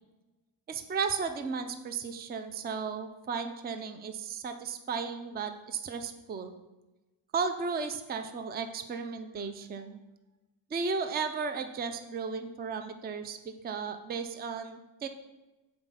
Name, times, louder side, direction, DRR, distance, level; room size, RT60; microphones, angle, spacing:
voice 1, 0.7-6.5 7.3-10.0 10.7-15.1, right 5 dB, 20° right, 8 dB, 0.4 m, -35 dB
7.2 x 4.5 x 5.6 m, 1.1 s
cardioid pair, 155°, 47 cm